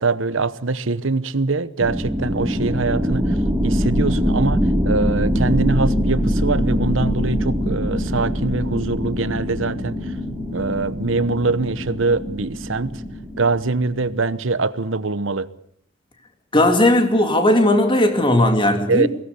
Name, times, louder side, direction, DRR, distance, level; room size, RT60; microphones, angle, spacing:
voice 1, 0.0-3.4 3.6-10.1 10.5-13.0 13.4-15.5 18.9-19.1, right 3 dB, 75° right, 1.0 m, -23 dB
sound 1, 1.8-14.1, equal, 10° right, 3.6 m, -23 dB
voice 2, 16.5-19.1, left 1 dB, 25° left, 2.8 m, -16 dB
22.5 x 17.5 x 8.3 m
head